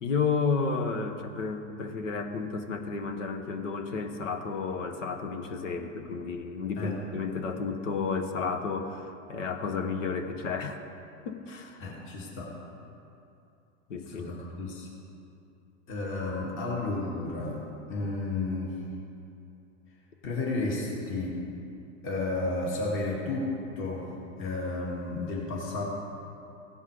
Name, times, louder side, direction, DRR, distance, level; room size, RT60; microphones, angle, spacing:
voice 1, 0.0-10.8 11.2-11.9 13.9-14.3, left 5 dB, 90° left, 6 dB, 1.1 m, -32 dB
voice 2, 11.8-12.6 14.1-14.9 15.9-18.7 20.2-21.4 22.0-24.1 24.4-25.8, left 2 dB, 35° left, -3 dB, 2.0 m, -32 dB
16.5 x 5.5 x 4.9 m, 2.7 s
hypercardioid pair, 115°, 36 cm